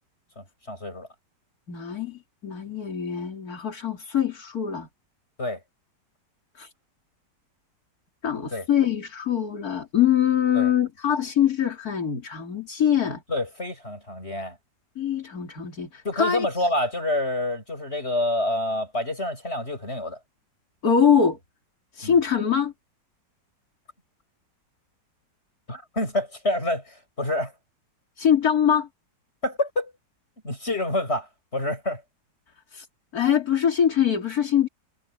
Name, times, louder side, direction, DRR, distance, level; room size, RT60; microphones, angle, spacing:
voice 1, 0.4-1.1 5.4-5.6 8.5-8.7 10.5-10.7 13.3-14.6 16.0-20.2 22.0-22.2 25.7-27.5 29.4-29.9 30.4-32.0, left 1 dB, 35° left, 8.5 m, -28 dB
voice 2, 1.7-4.9 6.5-6.7 8.2-13.2 15.0-16.5 20.8-21.4 21.9-22.7 28.2-28.9 32.7-32.9 33.1-34.7, left 8 dB, 55° left, 3.3 m, -23 dB
omnidirectional pair, 1.9 m